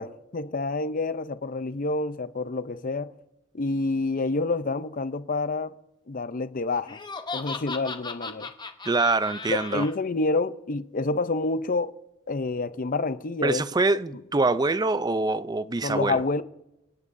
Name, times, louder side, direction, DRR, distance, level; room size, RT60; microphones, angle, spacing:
voice 1, 0.0-3.1 3.5-5.7 6.1-7.0 7.3-8.5 9.5-11.9 12.3-13.6 15.8-16.4, left 3 dB, 40° left, 0.6 m, -28 dB
Laughter, 6.9-9.9, left 4 dB, 20° left, 0.9 m, -36 dB
voice 2, 8.9-9.9 13.4-16.2, right 3 dB, 20° right, 0.4 m, -24 dB
28.0 x 18.0 x 2.7 m
head